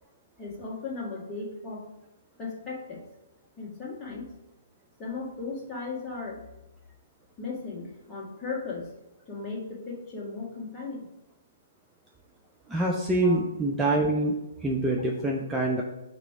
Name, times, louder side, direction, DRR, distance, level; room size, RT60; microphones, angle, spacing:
voice 1, 0.4-1.9 2.4-3.0 3.6-4.2 5.0-6.4 7.4-8.9 9.3-11.1 13.2-13.4, left 4 dB, 15° left, -4 dB, 1.6 m, -36 dB
voice 2, 12.7-14.3 14.6-15.8, right 1 dB, 10° right, -1 dB, 0.5 m, -25 dB
5.8 x 3.5 x 4.6 m, 0.94 s
figure-of-eight pair, 125°, 0 cm